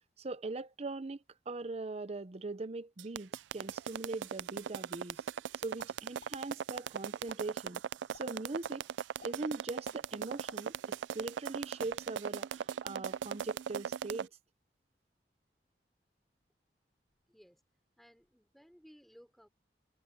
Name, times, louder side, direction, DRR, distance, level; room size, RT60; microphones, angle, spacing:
voice 1, 0.2-5.2 5.6-7.8 8.1-8.8 9.2-14.3, right 3 dB, 35° right, 0.7 m, -41 dB
sound 1, 3.0-14.3, right 8 dB, 90° right, 0.3 m, -38 dB
sound 2, 5.8-6.3 6.7-6.9 7.3-7.8 8.1-8.2 8.6-8.7 9.2-9.3 9.7-10.9 11.2-11.3 11.7-12.0, left 3 dB, 55° left, 5.8 m, -55 dB
voice 2, 17.3-17.6 18.0-19.5, equal, ahead, 4.1 m, -60 dB
head